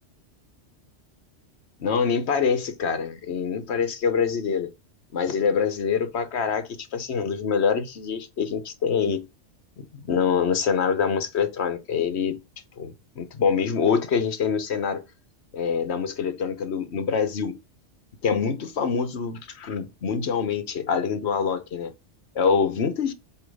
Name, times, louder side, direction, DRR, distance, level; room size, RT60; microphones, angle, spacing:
voice 1, 1.8-4.7 5.1-9.3 9.8-12.4 12.8-15.0 15.5-17.6 18.2-21.9 22.3-23.1, left 6 dB, 70° left, 1.3 m, -25 dB
8.1 x 3.2 x 5.2 m
omnidirectional pair, 1.2 m